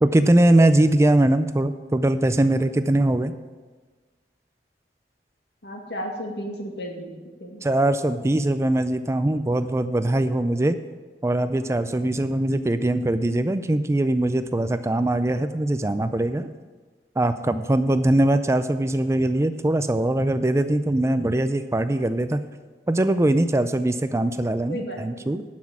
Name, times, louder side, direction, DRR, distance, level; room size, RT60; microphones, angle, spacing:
voice 1, 0.0-3.3 7.6-10.8 11.2-16.5 17.2-22.4 22.9-25.4, right 1 dB, 15° right, 11 dB, 0.4 m, -21 dB
voice 2, 5.6-7.1 7.4-7.6 24.7-25.4, equal, 70° left, 1 dB, 2.1 m, -33 dB
12.0 x 6.2 x 7.3 m, 1.4 s
head